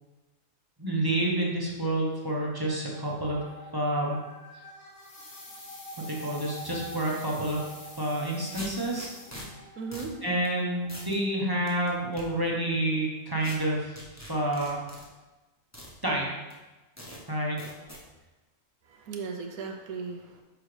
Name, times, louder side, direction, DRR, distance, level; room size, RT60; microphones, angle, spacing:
voice 1, 0.8-3.5 3.7-4.2 6.1-7.7 8.0-9.1 10.2-14.0 14.3-14.8 16.0-16.4 17.3-17.6, right 1 dB, 20° right, -3 dB, 0.7 m, -28 dB
sound 1, 2.1-13.1, equal, 80° left, 1.8 m, -49 dB
sound 2, 5.0-9.8 10.0-10.1, left 2 dB, 50° left, 1.5 m, -48 dB
sound 3, 7.8-7.9 8.5-9.5 9.9-10.1 10.4-10.5 10.9-11.2 11.7-12.2 13.4-13.6 14.0-15.1 15.7-15.9 16.5-16.6 17.0-17.2 17.6-18.0, equal, 15° left, 0.9 m, -43 dB
voice 2, 9.8-10.2 18.8-20.4, right 5 dB, 85° right, 3 dB, 1.2 m, -37 dB
6.3 x 4.9 x 3.3 m, 1.1 s
omnidirectional pair, 1.5 m